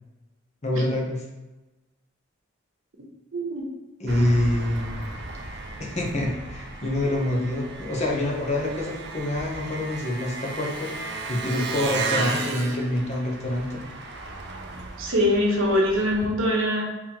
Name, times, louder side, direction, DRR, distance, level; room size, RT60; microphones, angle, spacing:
voice 1, 0.6-1.2 4.0-5.1 5.8-13.8, left 1 dB, 35° left, -1 dB, 0.7 m, -26 dB
voice 2, 3.3-3.7 15.0-16.8, left 1 dB, 80° right, -1 dB, 0.8 m, -23 dB
Engine, 4.1-16.3, right 3 dB, 55° right, 0.5 m, -35 dB
3.9 x 2.8 x 2.8 m, 1.1 s
head